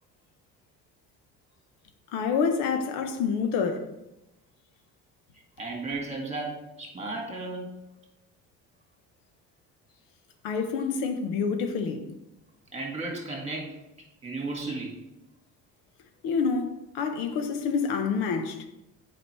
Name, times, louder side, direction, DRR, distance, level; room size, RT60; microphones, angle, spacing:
voice 1, 2.1-3.9 10.4-12.1 16.2-18.6, left 5 dB, 85° left, 0.9 m, -27 dB
voice 2, 5.6-7.7 12.7-13.7 14.2-15.0, right 3 dB, 20° right, 2.1 m, -34 dB
7.9 x 5.1 x 3.2 m
cardioid pair, 105°, 34 cm